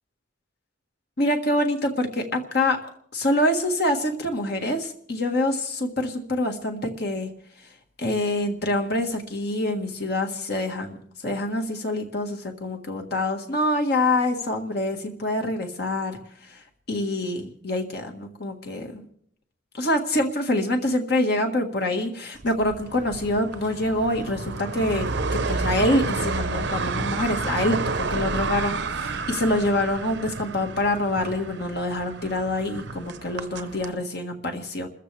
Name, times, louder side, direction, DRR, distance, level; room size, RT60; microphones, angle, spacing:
voice 1, 1.2-2.8 3.1-7.3 8.0-11.0 11.2-16.2 16.9-19.0 19.7-34.9, left 1 dB, 55° left, 3 dB, 1.6 m, -25 dB
sound 1, 22.4-33.9, right 3 dB, 60° right, 0.8 m, -30 dB
29.0 x 14.5 x 3.4 m, 0.65 s
head